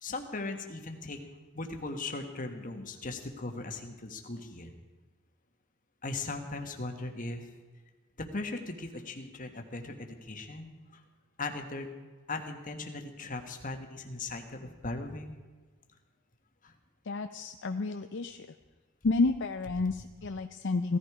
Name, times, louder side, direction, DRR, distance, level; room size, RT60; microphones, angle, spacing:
voice 1, 0.0-1.2 1.5-4.7 6.0-7.5 8.2-11.0 11.4-11.9 12.3-15.4 16.6-16.7, left 2 dB, 35° left, 5 dB, 1.5 m, -38 dB
voice 2, 17.1-18.5 19.0-21.0, left 3 dB, 55° left, 7 dB, 0.6 m, -30 dB
17.0 x 14.0 x 4.9 m, 1.4 s
head